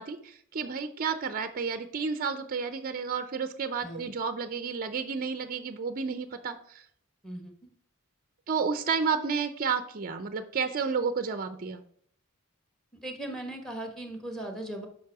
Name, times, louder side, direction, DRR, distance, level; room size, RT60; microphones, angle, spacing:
voice 1, 0.0-6.9 8.5-11.8, right 5 dB, 40° right, 10 dB, 0.5 m, -31 dB
voice 2, 7.2-7.5 12.9-14.9, right 1 dB, ahead, 4 dB, 1.2 m, -38 dB
7.5 x 5.4 x 4.7 m, 0.66 s
head